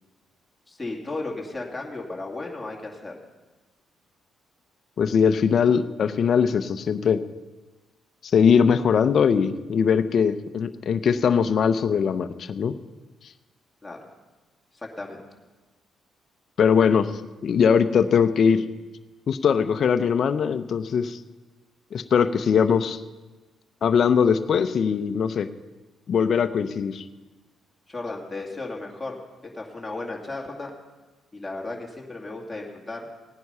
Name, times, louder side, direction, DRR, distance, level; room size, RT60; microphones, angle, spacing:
voice 1, 0.7-3.1 13.8-14.1 14.7-15.2 27.9-30.7 31.3-33.0, left 2 dB, 10° left, -3 dB, 2.4 m, -35 dB
voice 2, 5.0-7.2 8.3-12.7 16.6-17.1 17.4-18.6 19.3-21.2 21.9-23.0 23.8-25.5 26.1-27.0, left 6 dB, 55° left, 10 dB, 0.7 m, -21 dB
16.5 x 9.4 x 5.6 m, 1.2 s
cardioid pair, 90°, 0 cm